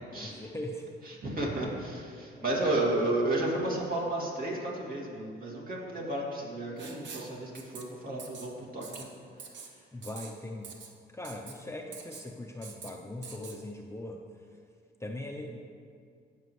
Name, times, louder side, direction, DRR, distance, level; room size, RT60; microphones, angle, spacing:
voice 1, 0.1-1.0 2.4-3.1 9.9-10.8 11.1-14.2 15.0-15.6, left 1 dB, 15° left, 1 dB, 0.6 m, -40 dB
voice 2, 1.1-9.1, right 2 dB, 45° right, -3 dB, 2.4 m, -32 dB
Writing, 6.8-7.3 7.5-7.8 8.2-8.5 8.8-9.0 9.4-9.7 10.0-10.3 10.6-10.9 11.2-11.5 11.9-12.2 12.6-12.9 13.2-13.6, right 6 dB, 65° right, 1.0 m, -45 dB
15.0 x 6.1 x 3.2 m, 2.3 s
cardioid pair, 90°, 20 cm